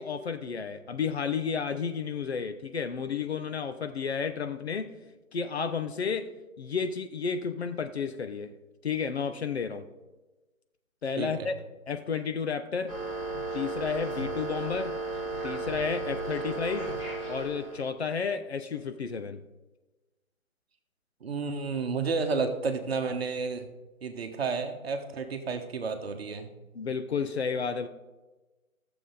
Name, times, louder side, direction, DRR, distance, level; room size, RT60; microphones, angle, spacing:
voice 1, 0.0-4.9 5.3-6.3 6.6-8.5 8.8-9.9 11.0-11.5 11.9-13.0 13.5-14.9 15.4-16.9 17.3-19.4 26.7-27.9, left 6 dB, 50° left, 9 dB, 0.7 m, -32 dB
voice 2, 11.2-11.5 21.2-23.7 24.0-26.5, right 4 dB, 45° right, 6 dB, 1.2 m, -31 dB
sound 1, 12.9-17.9, right 2 dB, 15° left, 1.9 m, -34 dB
14.0 x 6.9 x 3.9 m, 1.1 s
figure-of-eight pair, 140°, 42 cm